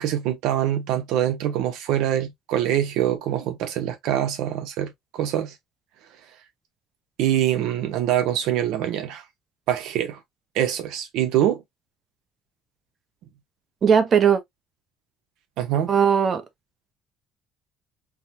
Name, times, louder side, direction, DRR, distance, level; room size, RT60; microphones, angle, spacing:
voice 1, 0.0-5.5 7.2-9.2 9.7-10.2 10.5-11.6 15.6-15.9, right 11 dB, 80° right, 0.9 m, -24 dB
voice 2, 13.8-14.4 15.9-16.4, right 7 dB, 40° right, 0.8 m, -18 dB
3.6 x 2.3 x 2.7 m
cardioid pair, 130°, 0 cm